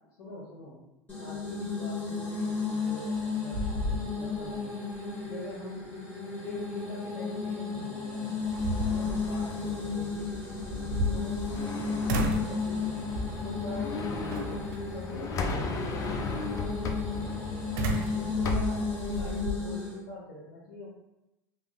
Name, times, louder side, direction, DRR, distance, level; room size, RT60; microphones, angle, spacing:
voice 1, 0.2-0.8 1.2-4.8 5.2-5.9 6.3-8.4 8.8-10.4 10.7-11.5 11.9-14.6 14.9-17.6 18.1-20.9, left 2 dB, 70° left, -7 dB, 1.0 m, -44 dB
sound 1, 1.1-20.0, left 4 dB, 15° left, 1.3 m, -34 dB
sound 2, 2.9-3.2 3.5-4.5 4.9-5.0 7.7-7.8 8.4-9.3 10.6-11.7 12.1-12.6 13.1-13.5 14.3-14.8 17.8-19.6, right 1 dB, 70° right, 0.5 m, -32 dB
sound 3, 8.5-19.4, left 4 dB, 35° left, 0.4 m, -37 dB
3.1 x 3.0 x 2.2 m, 0.95 s
supercardioid pair, 110°, 10 cm